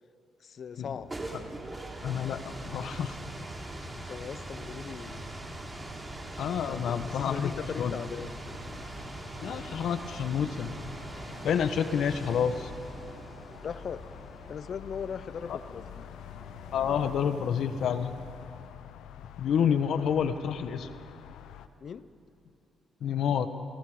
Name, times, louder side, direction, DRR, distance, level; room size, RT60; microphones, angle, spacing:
voice 1, 0.4-1.1 3.9-5.4 6.7-6.8 7.1-8.3 13.6-14.1 14.5-16.0 21.8-22.1, left 7 dB, 55° left, 14 dB, 0.9 m, -39 dB
sound 1, 0.8-17.5, right 1 dB, 20° right, 3.6 m, -43 dB
sound 2, 1.2-11.9, right 3 dB, 60° right, 2.7 m, -51 dB
voice 2, 2.0-3.2 6.4-8.0 9.4-10.8 11.4-12.7 15.5-15.6 16.7-18.1 19.4-20.9 23.0-23.5, left 8 dB, 70° left, 10 dB, 1.3 m, -29 dB
sound 3, 2.7-21.7, left 10 dB, 85° left, 0.9 m, -48 dB
29.5 x 28.0 x 5.1 m, 2.7 s
cardioid pair, 90°, 0 cm